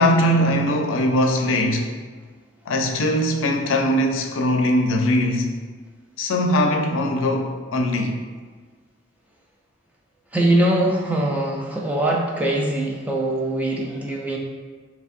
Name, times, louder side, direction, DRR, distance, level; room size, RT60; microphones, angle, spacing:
voice 1, 0.0-1.9 2.7-5.5 6.2-8.2, left 1 dB, 90° left, 3 dB, 0.4 m, -20 dB
voice 2, 10.3-14.4, right 1 dB, 10° right, -2 dB, 0.3 m, -22 dB
3.4 x 3.0 x 2.6 m, 1.5 s
head